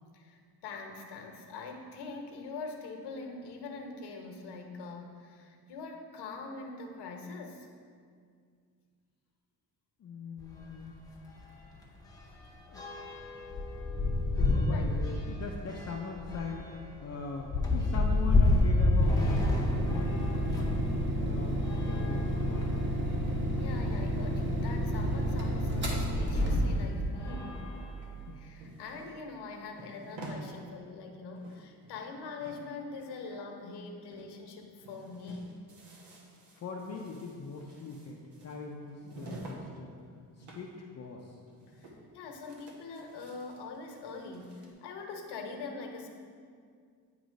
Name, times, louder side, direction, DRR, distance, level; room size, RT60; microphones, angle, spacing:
voice 1, 0.1-7.7 14.7-14.9 23.3-27.7 28.3-35.6 41.7-46.1, left 3 dB, 80° left, 3 dB, 1.0 m, -43 dB
voice 2, 10.0-10.9 12.7-12.9 14.4-16.7 17.0-20.8 21.2-22.7 28.3-28.4 36.5-40.0 40.4-41.4, left 4 dB, 40° left, -1 dB, 0.5 m, -41 dB
sound 1, 10.4-10.6 10.9-11.0 11.4-20.9 21.6-22.9 23.6-23.7 23.9-24.0 25.7-25.9 26.5-26.7 27.1-28.4, left 2 dB, 10° left, 0.8 m, -30 dB
sound 2, 19.0-27.0, equal, 30° right, 1.1 m, -30 dB
sound 3, 28.0-30.5 30.9-31.0 31.2-32.1 32.4-33.8 34.1-34.3 34.6-39.7 39.9-40.7 41.0-41.1 41.5-42.1 42.4-44.7, right 2 dB, 80° right, 1.2 m, -50 dB
9.0 x 3.1 x 5.1 m, 2.1 s
cardioid pair, 135°, 40 cm